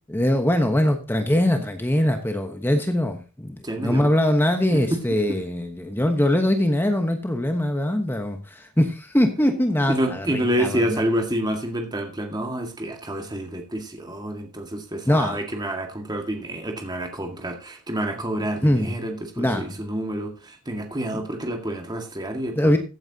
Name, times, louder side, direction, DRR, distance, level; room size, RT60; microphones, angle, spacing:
voice 1, 0.1-11.0 15.1-15.4 18.6-18.9 19.4-19.8 22.6-22.8, left 1 dB, 10° left, 6 dB, 1.1 m, -22 dB
voice 2, 3.6-4.1 4.7-4.8 9.9-22.8, right 1 dB, 20° right, 3 dB, 1.9 m, -28 dB
15.5 x 8.9 x 2.8 m, 0.31 s
head